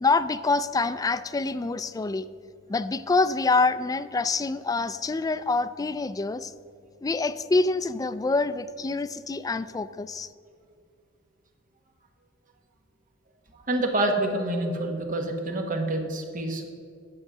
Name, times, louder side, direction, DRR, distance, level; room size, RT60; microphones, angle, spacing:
voice 1, 0.0-2.3 2.7-6.5 7.0-10.3, left 3 dB, 20° left, 12 dB, 0.3 m, -26 dB
voice 2, 13.5-16.6, right 1 dB, 45° right, 3 dB, 1.4 m, -27 dB
10.0 x 6.4 x 6.7 m, 2.3 s
head